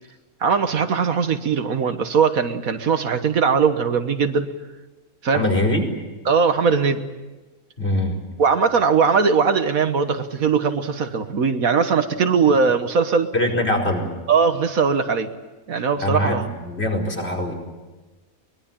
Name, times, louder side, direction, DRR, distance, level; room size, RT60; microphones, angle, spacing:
voice 1, 0.4-4.5 5.2-5.4 6.2-7.0 8.4-13.3 14.3-15.3 15.7-16.5, right 5 dB, 70° right, 8 dB, 1.7 m, -20 dB
voice 2, 5.3-5.9 7.8-8.2 13.3-14.1 16.0-17.5, left 1 dB, 45° left, 0 dB, 5.0 m, -22 dB
23.5 x 21.5 x 9.0 m, 1.2 s
omnidirectional pair, 1.5 m